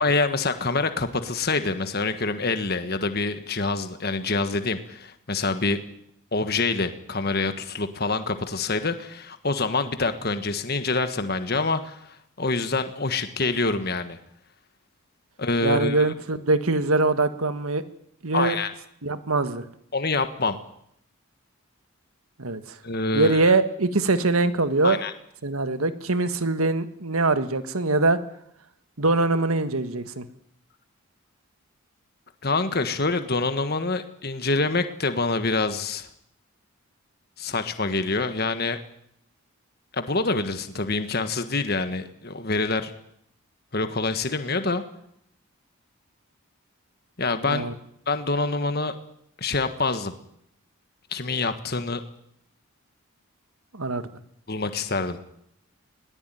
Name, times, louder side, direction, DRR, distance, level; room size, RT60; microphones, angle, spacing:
voice 1, 0.0-5.8 6.3-14.2 15.4-16.0 18.3-18.7 19.9-20.6 22.8-23.5 24.8-25.1 32.4-36.1 37.4-38.8 39.9-42.9 43.7-44.8 47.2-47.7 48.1-48.9 49.4-50.1 51.1-52.0 54.5-55.2, left 3 dB, 45° left, 9 dB, 1.6 m, -26 dB
voice 2, 15.6-17.8 18.2-18.6 19.0-19.6 22.4-22.6 23.1-25.0 25.4-28.2 29.0-30.3 47.5-47.7 53.7-54.0, right 3 dB, 80° right, 10 dB, 1.6 m, -23 dB
21.0 x 19.0 x 9.3 m, 0.72 s
head